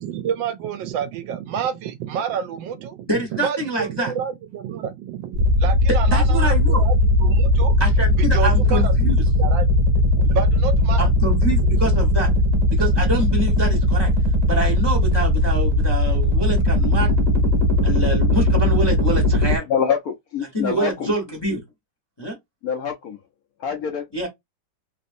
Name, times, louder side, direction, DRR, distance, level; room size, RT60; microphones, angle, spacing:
voice 1, 0.0-6.5 6.8-7.0 7.2-7.7 8.2-8.9 9.4-9.6 10.3-11.0, right 8 dB, 75° right, 1.2 m, -28 dB
voice 2, 3.1-4.1 5.8-6.8 7.8-9.3 10.2-10.3 11.0-12.3 12.7-14.1 14.4-17.1 17.8-19.7 20.5-21.6 22.2-22.4 24.1-24.3, right 1 dB, 25° left, 0.6 m, -26 dB
sound 1, 5.3-19.6, left 1 dB, 40° right, 1.1 m, -18 dB
voice 3, 19.7-21.1 22.6-23.2 23.6-24.3, left 7 dB, 75° left, 0.8 m, -25 dB
3.3 x 2.7 x 2.5 m
omnidirectional pair, 2.2 m